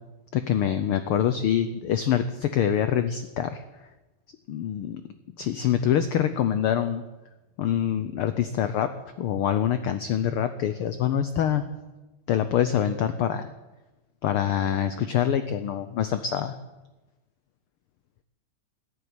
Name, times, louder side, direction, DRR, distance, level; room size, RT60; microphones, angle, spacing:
voice 1, 0.3-3.6 4.5-5.0 5.4-7.0 7.6-8.9 9.2-11.6 12.3-13.5 14.2-16.5, left 9 dB, 85° left, 10 dB, 1.2 m, -25 dB
13.5 x 11.0 x 9.7 m, 1.1 s
omnidirectional pair, 3.4 m